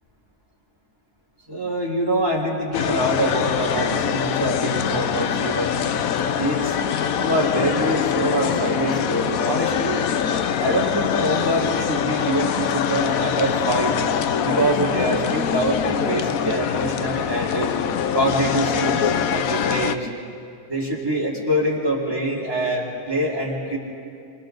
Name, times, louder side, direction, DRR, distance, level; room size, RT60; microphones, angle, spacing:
voice 1, 1.5-5.9 6.2-6.8 7.2-10.0 10.6-14.0 14.4-17.7 18.1-20.1 20.7-23.8, right 1 dB, 15° right, -6 dB, 4.6 m, -24 dB
sound 1, 2.7-20.0, left 8 dB, 75° left, 1.2 m, -24 dB
29.0 x 26.5 x 4.0 m, 2.4 s
omnidirectional pair, 1.5 m